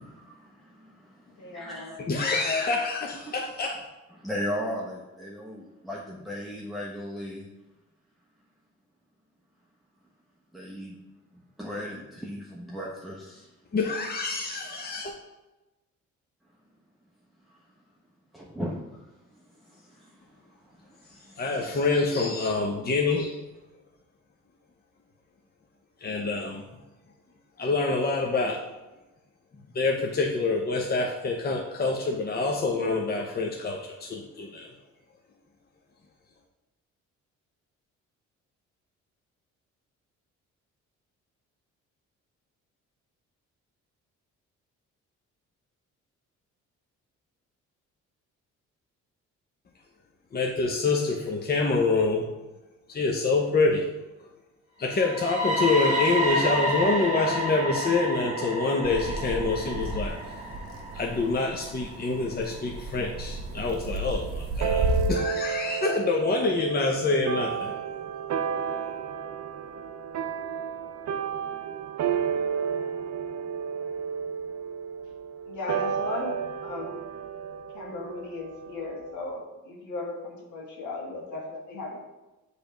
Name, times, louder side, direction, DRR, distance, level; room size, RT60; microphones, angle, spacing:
voice 1, 0.0-2.3 3.2-3.3 4.1-7.5 10.5-11.0 11.3-13.5 17.5-17.6 18.3-19.0 19.3-21.8 22.1-22.4 23.1-23.2, equal, ahead, -4 dB, 0.9 m, -38 dB
voice 2, 1.4-1.9 75.5-77.0 77.7-82.0, left 2 dB, 75° left, -1 dB, 1.6 m, -36 dB
voice 3, 2.1-3.8 13.7-15.1 21.4-23.3 26.0-26.6 27.6-28.6 29.7-34.7 50.3-52.3 52.9-53.8 54.8-60.3 60.9-67.7, left 3 dB, 30° left, 0 dB, 0.8 m, -26 dB
sound 1, 54.9-62.8, equal, 25° right, 1.8 m, -30 dB
sound 2, 58.8-65.1, right 2 dB, 50° right, 1.2 m, -33 dB
sound 3, 64.6-79.3, right 7 dB, 65° right, 0.6 m, -32 dB
6.9 x 3.4 x 5.1 m, 1.0 s
cardioid pair, 90°, 30 cm